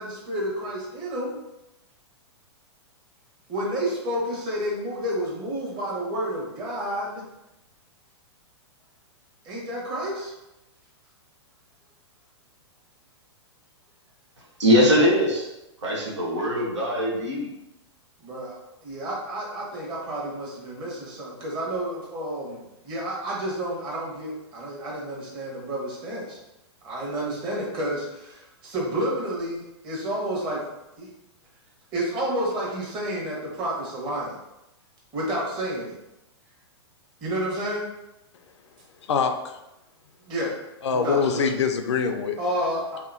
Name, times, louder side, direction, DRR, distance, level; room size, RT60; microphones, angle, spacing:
voice 1, 0.0-1.3 3.5-7.2 9.4-10.3 18.2-26.4 26.8-30.6 31.0-31.1 31.9-34.4 35.1-35.9 37.2-37.9 40.2-40.5 40.9-41.5 42.4-43.0, right 1 dB, 35° right, -4 dB, 1.2 m, -30 dB
voice 2, 14.6-15.5 15.8-17.5, equal, 85° right, -4 dB, 1.0 m, -21 dB
voice 3, 39.0-39.6 40.8-42.4, left 6 dB, 75° left, 6 dB, 0.4 m, -24 dB
2.8 x 2.6 x 2.6 m, 0.92 s
hypercardioid pair, 115°, 15 cm